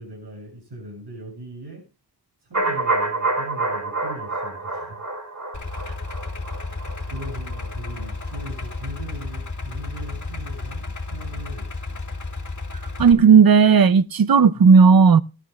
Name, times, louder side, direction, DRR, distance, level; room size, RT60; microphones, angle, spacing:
voice 1, 0.0-1.8 2.5-5.0 7.1-12.0 14.5-14.6, right 1 dB, 85° right, 7.5 m, -39 dB
sound 1, 2.5-8.4 8.7-8.8, right 2 dB, 45° right, 6.1 m, -28 dB
Idling, 5.5-13.1, left 3 dB, 45° left, 1.8 m, -32 dB
voice 2, 13.0-15.2, right 6 dB, 60° right, 0.7 m, -13 dB
18.5 x 12.5 x 2.3 m
wide cardioid pair, 80°, 40 cm